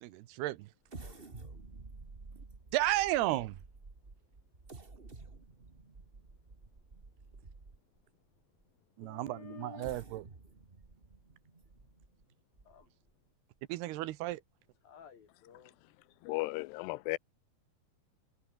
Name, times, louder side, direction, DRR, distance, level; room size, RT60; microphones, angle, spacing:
voice 1, 0.0-0.7 2.7-3.6 9.0-10.2 13.7-14.4, right 16 dB, 80° right, 2.9 m, -33 dB
sound 1, 0.9-8.0 8.6-8.7 9.6-13.1 13.6-13.7 14.1-14.3, right 3 dB, 25° right, 1.2 m, -52 dB
voice 2, 1.0-1.6 9.0-10.0 12.6-12.9 14.8-15.8, left 7 dB, 60° left, 4.7 m, -53 dB
voice 3, 16.2-17.2, left 22 dB, 90° left, 2.8 m, -35 dB
omnidirectional pair, 4.7 m